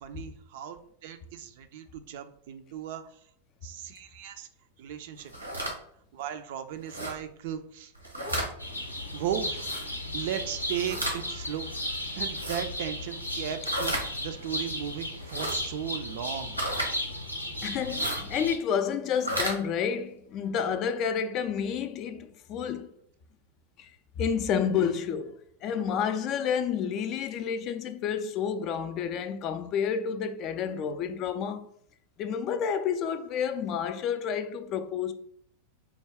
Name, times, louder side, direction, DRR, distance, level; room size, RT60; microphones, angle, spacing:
voice 1, 0.0-3.0 3.6-4.5 4.8-5.3 6.1-7.9 9.1-9.7 10.1-11.7 12.1-16.6, right 9 dB, 50° right, 0.4 m, -36 dB
sound 1, 5.2-5.7 6.9-7.1 8.0-8.5 9.5-9.8 10.7-11.2 12.3-12.6 13.6-14.1 15.2-15.5 16.6-16.9 17.9-18.2 19.1-19.6, right 1 dB, 90° right, 1.1 m, -32 dB
sound 2, 8.6-18.6, left 1 dB, 85° left, 0.5 m, -35 dB
voice 2, 17.6-22.9 23.8-23.9 24.2-31.7 32.2-35.1, left 7 dB, 35° left, 0.3 m, -30 dB
4.6 x 2.2 x 3.4 m
figure-of-eight pair, 90°, 0 cm